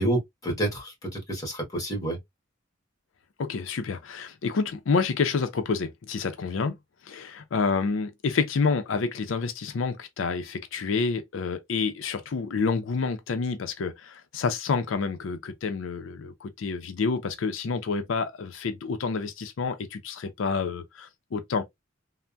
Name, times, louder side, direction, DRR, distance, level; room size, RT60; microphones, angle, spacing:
voice 1, 0.0-2.2, right 1 dB, 20° left, 1.3 m, -29 dB
voice 2, 3.4-6.8 7.0-21.6, left 4 dB, 85° left, 0.5 m, -28 dB
3.3 x 2.0 x 2.5 m
head